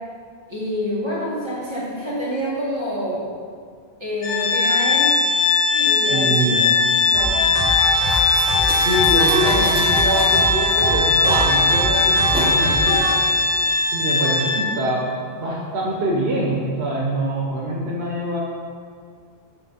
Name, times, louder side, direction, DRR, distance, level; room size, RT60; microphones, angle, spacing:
voice 1, 0.5-3.3 4.0-5.2 5.7-7.5, equal, 25° right, -9 dB, 1.8 m, -27 dB
Organ, 4.2-14.9, left 3 dB, 80° left, 1.4 m, -19 dB
voice 2, 6.1-6.7 8.8-13.1 13.9-18.4, right 1 dB, 85° right, -3 dB, 1.1 m, -24 dB
sound 1, 7.1-13.1, equal, 45° right, 1.4 m, -25 dB
sound 2, 7.8-12.6, equal, 5° right, 0.9 m, -29 dB
6.0 x 5.4 x 4.1 m, 2.1 s
omnidirectional pair, 1.1 m